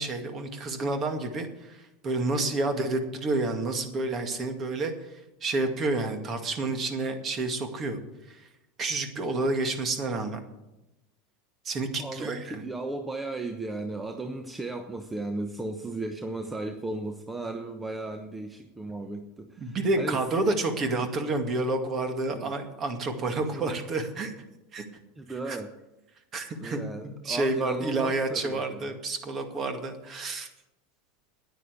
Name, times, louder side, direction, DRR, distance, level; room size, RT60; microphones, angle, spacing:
voice 1, 0.0-8.0 8.3-8.5 8.8-10.4 11.6-12.6 19.6-24.3 24.7-24.8 25.5-25.6 26.3-30.5, right 2 dB, 35° right, 6 dB, 2.1 m, -29 dB
voice 2, 12.0-20.2 22.3-22.5 23.5-23.8 25.2-25.7 26.6-29.0, right 2 dB, 15° right, 6 dB, 1.1 m, -36 dB
9.7 x 9.7 x 8.2 m, 0.96 s
hypercardioid pair, 90°, 0 cm